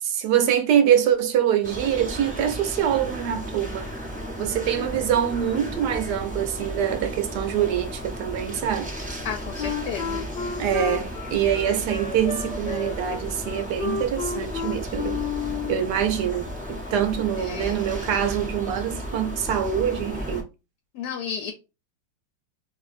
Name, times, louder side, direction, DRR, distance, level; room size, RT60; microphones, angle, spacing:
voice 1, 0.0-3.9 4.4-9.2 10.6-15.2 15.7-20.5, right 9 dB, 70° right, 1.1 m, -24 dB
sound 1, 1.6-20.4, equal, 10° right, 0.5 m, -34 dB
voice 2, 9.2-10.3 17.4-17.8 20.9-21.5, left 7 dB, 70° left, 1.2 m, -33 dB
Wind instrument woodwind instrument, 9.6-15.9, left 6 dB, 50° left, 0.8 m, -31 dB
3.1 x 2.8 x 4.0 m
omnidirectional pair, 1.9 m